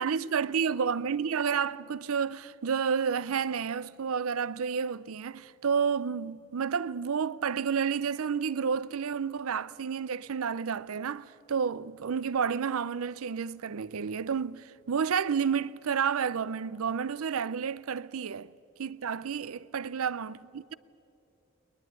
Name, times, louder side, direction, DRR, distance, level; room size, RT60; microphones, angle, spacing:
voice 1, 0.0-18.5 18.8-20.7, right 6 dB, 90° right, 0.5 m, -30 dB
21.0 x 21.0 x 9.5 m
head